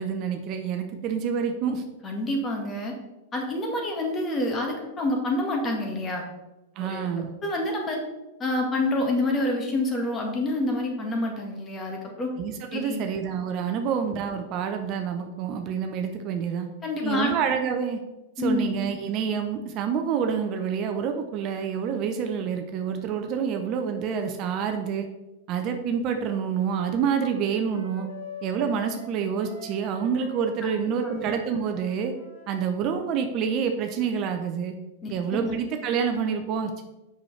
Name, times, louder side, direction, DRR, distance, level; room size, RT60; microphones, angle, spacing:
voice 1, 0.0-1.8 6.8-7.3 12.4-16.7 17.0-18.0 18.4-25.1 25.5-28.1 28.4-32.1 32.5-34.7 35.1-36.8, right 7 dB, 40° right, 6 dB, 0.6 m, -27 dB
voice 2, 2.0-2.9 3.3-6.2 6.8-7.1 7.4-8.0 8.4-12.3 12.7-13.1 13.7-13.8 16.8-17.3 18.4-18.8 31.0-31.3 35.0-35.5, left 1 dB, 25° left, 1 dB, 1.6 m, -27 dB
Wind instrument woodwind instrument, 26.2-32.5, left 3 dB, 75° left, 1.6 m, -44 dB
6.0 x 5.7 x 3.2 m, 1.0 s
hypercardioid pair, 105°, 0 cm